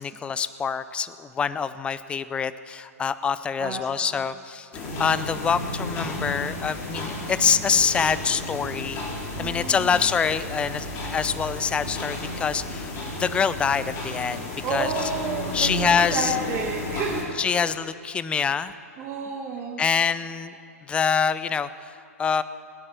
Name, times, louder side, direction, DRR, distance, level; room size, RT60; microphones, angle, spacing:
voice 1, 0.0-4.7 5.0-9.0 9.4-12.9 13.2-15.1 15.5-16.4 17.4-18.7 19.8-20.5 20.9-22.4, left 6 dB, 15° left, 15 dB, 0.5 m, -25 dB
voice 2, 3.6-4.1 9.4-9.9 14.6-17.5 19.0-19.8, right 4 dB, 30° right, -1 dB, 1.4 m, -31 dB
sound 1, 4.7-17.2, left 2 dB, 35° left, 3.9 m, -33 dB
20.0 x 9.9 x 6.8 m, 2.7 s
figure-of-eight pair, 110°, 8 cm